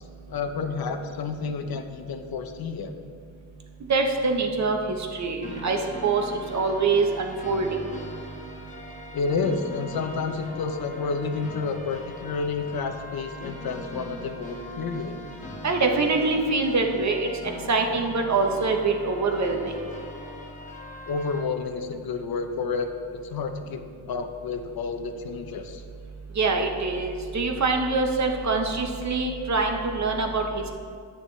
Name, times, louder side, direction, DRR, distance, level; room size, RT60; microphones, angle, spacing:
voice 1, 0.3-2.9 9.1-15.1 21.1-23.8 24.1-25.8, left 4 dB, 55° left, 7 dB, 0.7 m, -30 dB
voice 2, 3.9-7.8 15.6-17.3 17.7-19.7 26.3-30.7, right 3 dB, 40° right, 3 dB, 0.9 m, -24 dB
sound 1, 5.4-21.4, left 1 dB, 15° left, 1.1 m, -40 dB
9.6 x 9.2 x 3.2 m, 2.2 s
cardioid pair, 130°, 45 cm